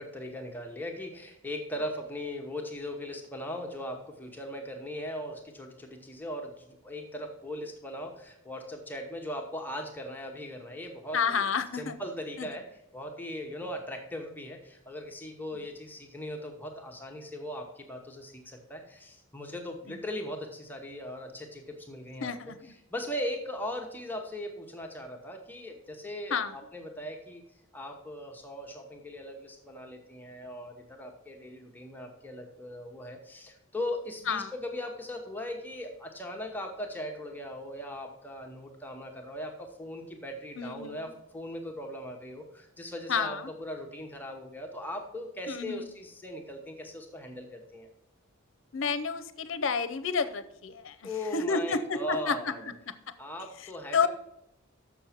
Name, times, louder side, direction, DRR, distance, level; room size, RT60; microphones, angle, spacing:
voice 1, 0.0-11.5 11.7-12.7 12.9-27.4 27.7-47.9 51.0-52.7 53.2-54.1, left 1 dB, 10° left, 2 dB, 0.9 m, -39 dB
voice 2, 11.1-12.0 12.4-12.5 22.2-22.7 26.3-26.5 34.3-34.5 40.6-41.1 43.1-43.5 45.5-45.8 48.7-52.7 53.6-54.1, left 5 dB, 65° left, 12 dB, 0.6 m, -30 dB
7.1 x 6.3 x 5.8 m, 0.83 s
head